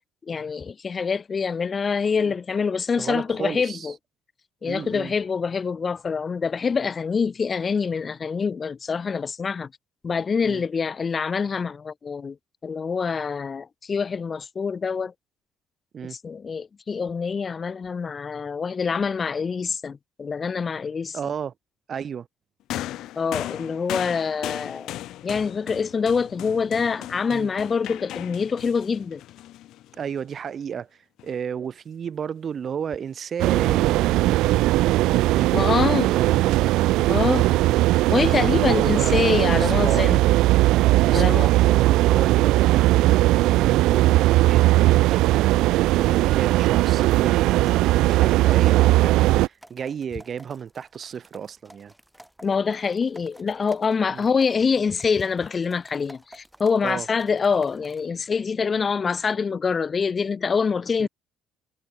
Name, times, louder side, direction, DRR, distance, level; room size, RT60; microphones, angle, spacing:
voice 1, 0.3-3.9 4.6-9.7 10.0-12.4 12.6-15.1 16.1-21.2 23.2-24.9 25.2-29.2 35.5-36.1 37.1-37.5 38.1-40.2 41.1-41.5 52.4-61.1, left 5 dB, 30° left, 0.4 m, -25 dB
voice 2, 3.0-3.9 4.6-5.1 10.4-10.6 15.9-16.2 21.1-21.5 21.9-22.3 27.3-27.5 29.9-30.9 31.2-34.1 35.3-36.6 38.2-40.2 41.0-44.6 45.1-51.9 54.1-54.2 56.8-57.1 61.0-61.1, right 7 dB, 40° right, 1.0 m, -33 dB
sound 1, 22.7-30.2 31.2-31.3, left 14 dB, 65° left, 3.8 m, -36 dB
sound 2, 33.4-49.5, right 17 dB, 80° right, 0.4 m, -19 dB
sound 3, 49.2-58.1, right 1 dB, 5° right, 5.2 m, -51 dB
cardioid pair, 130°, 0 cm